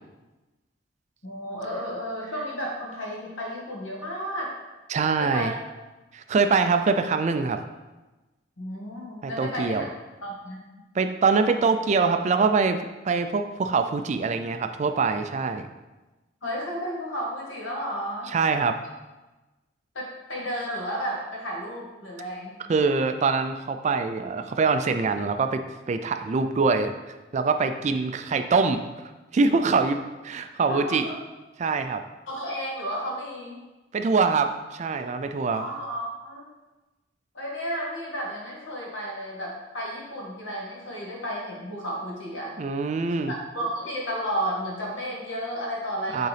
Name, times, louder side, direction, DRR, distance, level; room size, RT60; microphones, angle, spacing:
voice 1, 1.2-4.5 5.2-5.5 8.6-9.8 10.2-10.6 16.4-18.3 19.9-22.6 30.7-31.1 32.3-33.6 35.5-36.5 37.3-42.5 43.3-46.3, equal, 80° left, -3 dB, 1.7 m, -32 dB
voice 2, 4.9-5.5 6.1-7.6 9.2-9.9 10.9-15.7 18.3-18.8 22.7-25.6 25.9-26.9 27.3-28.8 29.3-30.0 30.2-31.1 31.6-32.0 33.9-35.6 42.6-43.3 46.1-46.3, right 4 dB, 35° right, 8 dB, 0.3 m, -24 dB
7.9 x 3.8 x 3.3 m, 1.1 s
head